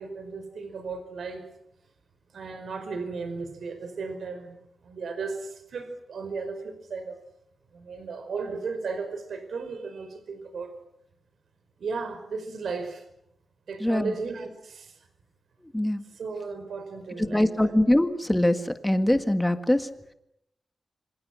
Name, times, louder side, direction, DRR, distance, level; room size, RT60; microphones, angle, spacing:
voice 1, 0.0-1.4 2.3-7.2 7.7-10.7 11.8-13.0 13.7-15.0 16.0-17.7, right 4 dB, 90° right, 8 dB, 5.1 m, -35 dB
voice 2, 17.3-19.9, left 1 dB, 10° left, 8 dB, 1.7 m, -23 dB
27.5 x 26.5 x 6.2 m, 0.77 s
wide cardioid pair, 140°, 0 cm